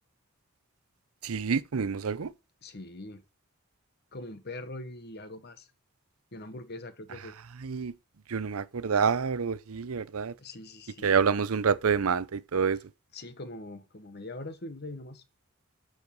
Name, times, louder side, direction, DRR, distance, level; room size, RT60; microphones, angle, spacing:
voice 1, 1.2-2.3 7.6-7.9 8.3-10.3 11.0-12.8, right 6 dB, 90° right, 0.6 m, -27 dB
voice 2, 2.6-3.2 4.1-5.7 6.3-7.4 10.4-11.1 13.1-15.2, left 2 dB, 50° left, 1.2 m, -42 dB
8.1 x 6.5 x 5.3 m
head